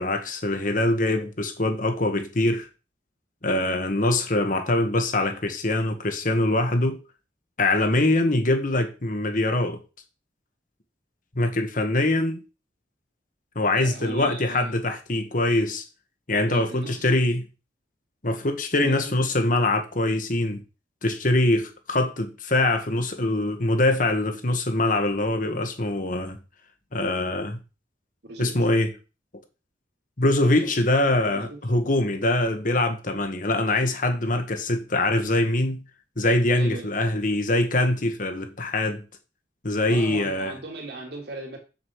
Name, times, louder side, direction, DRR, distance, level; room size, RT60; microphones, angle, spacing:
voice 1, 0.0-2.7 3.4-7.0 7.6-9.8 11.3-12.4 13.5-15.8 16.3-17.5 18.2-20.6 21.0-26.4 26.9-27.6 28.4-28.9 30.2-35.8 36.2-39.0 39.6-40.5, left 2 dB, 45° left, 1.7 m, -23 dB
voice 2, 13.8-14.7 16.5-17.1 18.8-19.4 28.2-28.7 30.6-30.8 31.2-32.0 36.5-36.9 39.9-41.6, right 2 dB, 60° right, 3.2 m, -39 dB
7.6 x 7.3 x 4.8 m
head